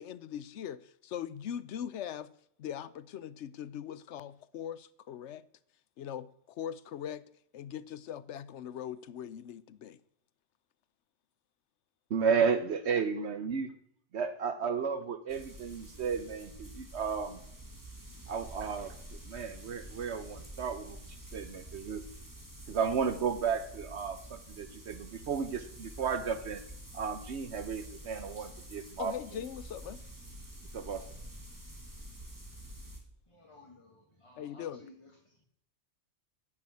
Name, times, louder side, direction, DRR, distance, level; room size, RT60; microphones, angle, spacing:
voice 1, 0.0-2.3 2.6-5.4 6.0-7.2 7.5-10.0 29.0-30.0 34.4-34.8, left 9 dB, 75° left, 0.9 m, -41 dB
voice 2, 12.1-13.7 14.1-17.4 18.3-22.0 22.7-26.6 26.9-29.4 30.7-31.0, right 6 dB, 70° right, 1.1 m, -33 dB
sound 1, 15.3-33.0, right 1 dB, 15° right, 2.2 m, -48 dB
voice 3, 33.3-35.5, left 2 dB, 25° left, 2.0 m, -57 dB
10.5 x 7.3 x 8.3 m
omnidirectional pair, 1.2 m